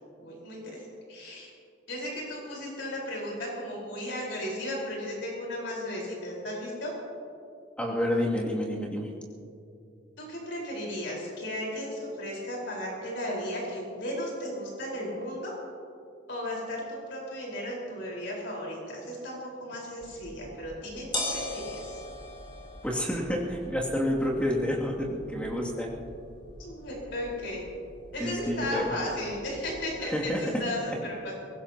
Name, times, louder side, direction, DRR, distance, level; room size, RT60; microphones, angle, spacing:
voice 1, 0.2-1.5 1.9-7.0 10.2-15.5 16.3-22.0 26.6-27.6 28.1-31.3, left 1 dB, 65° left, -3 dB, 4.5 m, -35 dB
voice 2, 7.8-9.1 22.8-25.9 28.2-28.9 30.0-30.5, left 1 dB, 5° left, -4 dB, 2.4 m, -29 dB
sound 1, 20.0-30.1, left 1 dB, 25° left, 3.1 m, -41 dB
23.0 x 19.0 x 2.9 m, 2.5 s
head